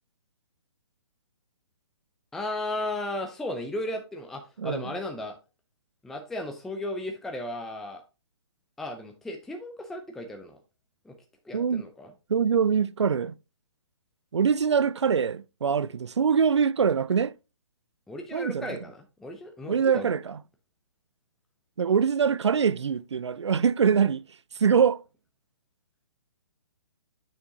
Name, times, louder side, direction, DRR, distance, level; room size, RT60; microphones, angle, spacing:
voice 1, 2.3-5.4 6.0-8.0 8.8-10.6 11.1-11.2 11.5-12.1 18.1-20.1, left 1 dB, ahead, 0.5 m, -35 dB
voice 2, 4.6-4.9 11.5-11.9 12.3-13.3 14.3-17.3 18.3-18.8 19.7-20.4 21.8-24.2 24.6-25.0, right 6 dB, 70° right, 0.4 m, -24 dB
6.8 x 6.4 x 2.8 m
figure-of-eight pair, 130°, 15 cm